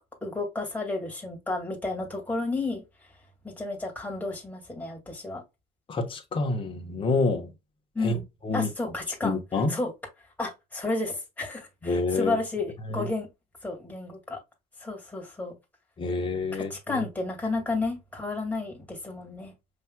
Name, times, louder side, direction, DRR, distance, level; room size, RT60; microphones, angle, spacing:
voice 1, 0.2-2.8 3.4-5.4 7.9-8.2 8.5-9.9 10.4-13.3 13.6-14.4 14.8-15.5 16.5-19.5, left 3 dB, 10° left, 2.1 m, -32 dB
voice 2, 5.9-7.5 8.0-8.2 8.4-8.7 9.2-9.8 11.8-12.4 12.9-13.1 16.0-17.0, left 3 dB, 30° left, 1.1 m, -27 dB
5.7 x 3.2 x 2.2 m
cardioid pair, 110°, 17 cm